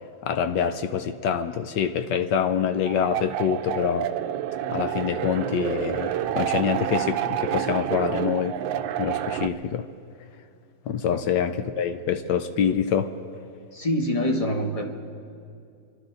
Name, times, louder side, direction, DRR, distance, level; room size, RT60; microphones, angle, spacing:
voice 1, 0.2-4.1 4.7-8.6 9.0-9.9 10.9-13.1, left 8 dB, 70° left, 9 dB, 1.2 m, -25 dB
sound 1, 2.8-9.5, right 12 dB, 85° right, 1.3 m, -28 dB
voice 2, 13.7-14.9, equal, 25° left, 2 dB, 0.9 m, -25 dB
28.5 x 12.0 x 3.9 m, 2.4 s
omnidirectional pair, 2.0 m